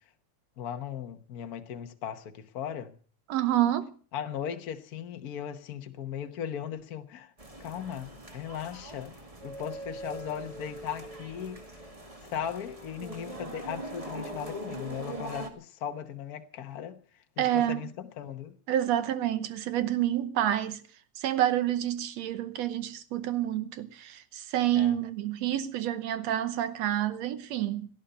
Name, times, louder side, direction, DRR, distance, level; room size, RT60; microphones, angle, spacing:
voice 1, 0.6-3.0 4.1-7.3 7.6-9.2 9.4-11.6 12.3-17.0 17.4-18.6 24.7-24.9, left 9 dB, 80° left, 0.8 m, -37 dB
voice 2, 3.3-3.9 17.4-17.9 18.7-20.8 21.2-27.9, right 12 dB, 70° right, 2.0 m, -28 dB
sound 1, 7.4-15.5, right 1 dB, 15° right, 1.5 m, -42 dB
17.5 x 11.5 x 6.7 m
omnidirectional pair, 3.4 m